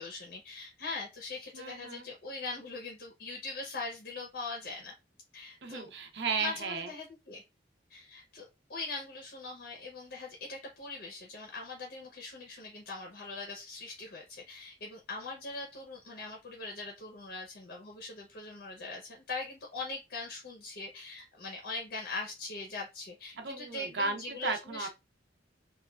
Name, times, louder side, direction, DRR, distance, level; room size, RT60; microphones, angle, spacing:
voice 1, 0.0-4.9 5.3-5.9 6.4-7.4 7.9-24.9, left 3 dB, 55° left, 0.6 m, -41 dB
voice 2, 1.5-2.1 5.6-6.9 23.4-24.9, right 4 dB, 65° right, 0.6 m, -35 dB
3.0 x 2.2 x 2.3 m
head